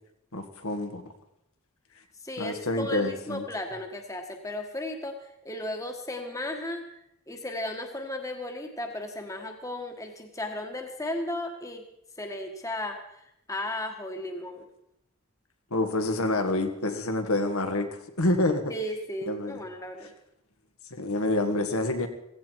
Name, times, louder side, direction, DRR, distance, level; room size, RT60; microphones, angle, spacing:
voice 1, 0.3-1.1 2.4-3.4 15.7-17.9 18.2-18.6 19.3-19.6 20.9-22.1, left 2 dB, 75° left, 6 dB, 1.9 m, -27 dB
voice 2, 2.2-6.8 7.3-11.8 12.2-14.7 18.7-20.1, left 1 dB, 15° left, 4 dB, 1.4 m, -35 dB
16.5 x 16.0 x 4.7 m, 0.80 s
head